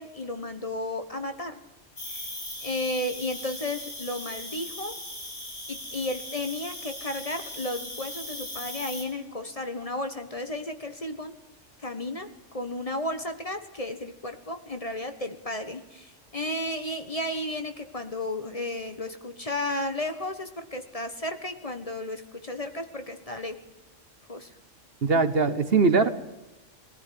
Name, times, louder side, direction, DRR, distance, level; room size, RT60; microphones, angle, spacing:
voice 1, 0.0-1.6 2.1-2.3 2.6-5.0 5.7-11.3 11.8-23.6 24.3-24.5, left 1 dB, 30° left, 7 dB, 1.4 m, -33 dB
Cricket, 2.0-9.0, left 1 dB, 90° left, 6.4 m, -39 dB
voice 2, 25.0-26.1, right 4 dB, 50° right, 11 dB, 1.2 m, -21 dB
21.0 x 13.5 x 9.5 m, 1.1 s
omnidirectional pair, 1.3 m